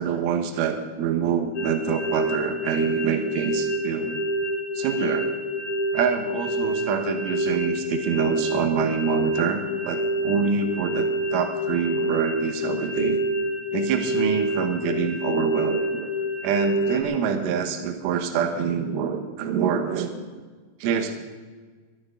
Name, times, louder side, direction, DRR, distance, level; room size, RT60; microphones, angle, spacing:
voice 1, 0.0-4.2 4.8-5.3 5.9-13.2 13.7-16.1 16.4-20.1 20.8-21.2, right 7 dB, 80° right, 6 dB, 3.6 m, -26 dB
sound 1, 1.5-17.0, equal, 60° left, 2.0 m, -27 dB
23.0 x 12.0 x 3.8 m, 1.4 s
omnidirectional pair, 5.6 m